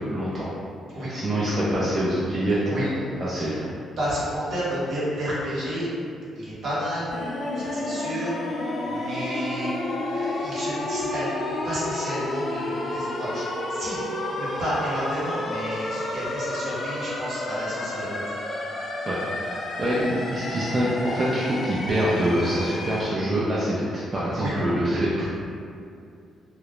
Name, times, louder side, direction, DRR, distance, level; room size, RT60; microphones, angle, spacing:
voice 1, 0.1-0.5 1.1-2.8 3.2-3.5 19.1-19.2 19.8-25.3, right 1 dB, 35° right, -8 dB, 0.4 m, -25 dB
voice 2, 4.0-5.9 6.3-7.1 7.5-11.3 11.6-14.0 14.3-18.2 24.4-24.5, equal, 65° right, -9 dB, 1.0 m, -31 dB
sound 1, 7.1-23.1, left 2 dB, 45° left, 0.3 m, -31 dB
2.2 x 2.0 x 2.9 m, 2.4 s
cardioid pair, 90°, 0 cm